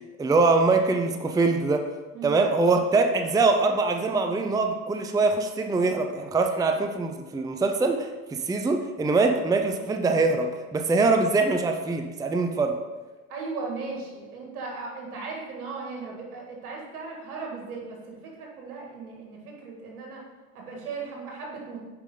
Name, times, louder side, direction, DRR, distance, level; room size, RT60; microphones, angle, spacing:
voice 1, 0.2-1.8 2.2-12.7, right 3 dB, 10° right, 5 dB, 0.6 m, -23 dB
voice 2, 13.3-20.2 20.5-21.8, right 4 dB, 80° right, -1 dB, 2.2 m, -37 dB
8.9 x 5.2 x 3.8 m, 1.2 s
hypercardioid pair, 75°, 44 cm